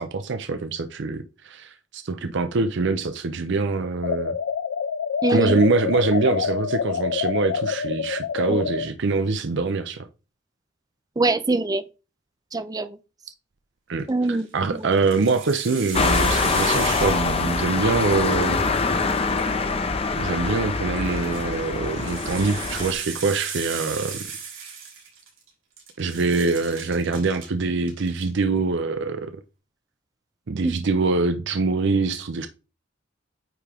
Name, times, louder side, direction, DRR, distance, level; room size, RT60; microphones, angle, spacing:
voice 1, 0.0-4.3 5.3-10.1 13.9-18.6 20.2-24.2 26.0-29.3 30.5-32.5, right 3 dB, 65° right, 0.6 m, -24 dB
sound 1, 4.0-8.9, left 7 dB, 75° left, 0.4 m, -26 dB
voice 2, 5.2-5.6 8.5-8.6 11.2-11.8 12.5-13.0 14.1-14.9 30.6-30.8, right 2 dB, 20° right, 0.4 m, -24 dB
sound 2, 14.1-14.4 14.9-17.7 18.0-19.8 21.0-25.5 25.8-27.5 27.8-28.3, right 6 dB, 85° right, 3.5 m, -36 dB
sound 3, 15.9-22.9, left 4 dB, 30° left, 0.6 m, -24 dB
9.2 x 3.7 x 3.4 m
head